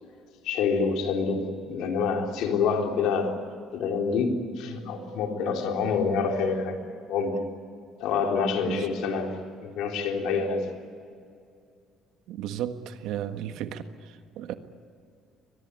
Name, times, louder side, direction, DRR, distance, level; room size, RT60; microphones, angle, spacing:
voice 1, 0.4-3.4 3.7-6.8 7.1-7.4 8.0-9.4 9.6-10.6, left 5 dB, 80° left, 3.7 m, -27 dB
voice 2, 8.6-8.9 12.3-14.5, right 10 dB, 80° right, 1.5 m, -34 dB
23.5 x 20.0 x 9.7 m
cardioid pair, 120°, 0 cm